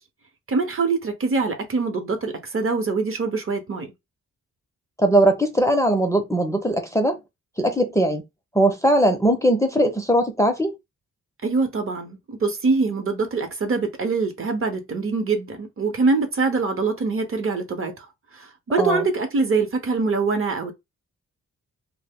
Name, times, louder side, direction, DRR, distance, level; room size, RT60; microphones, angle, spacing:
voice 1, 0.5-3.9 11.4-18.1 18.3-20.7, right 4 dB, 40° right, 0.8 m, -24 dB
voice 2, 5.0-7.2 7.6-8.2 8.5-10.7 18.8-19.1, right 1 dB, 10° left, 0.5 m, -20 dB
2.0 x 2.0 x 3.5 m
cardioid pair, 70°, 32 cm